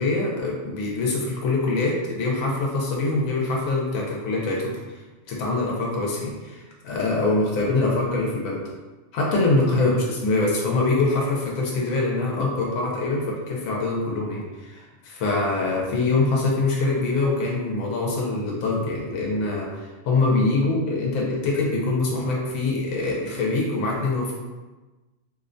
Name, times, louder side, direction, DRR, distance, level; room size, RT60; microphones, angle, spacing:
voice 1, 0.0-4.7 5.3-8.6 9.1-24.4, left 3 dB, 85° left, -3 dB, 1.0 m, -24 dB
2.7 x 2.1 x 2.5 m, 1.2 s
omnidirectional pair, 1.4 m